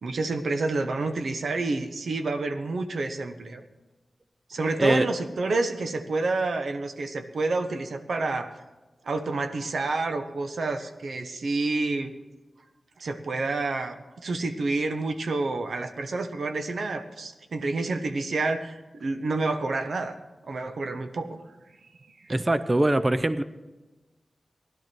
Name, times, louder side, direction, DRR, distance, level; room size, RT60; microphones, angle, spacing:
voice 1, 0.0-3.6 4.5-8.5 9.0-12.1 13.0-20.1 20.4-21.4, right 3 dB, 75° right, 7 dB, 1.0 m, -29 dB
voice 2, 22.3-23.4, right 1 dB, 25° right, 13 dB, 0.5 m, -22 dB
16.5 x 11.5 x 4.5 m, 1.2 s
wide cardioid pair, 115°, 0 cm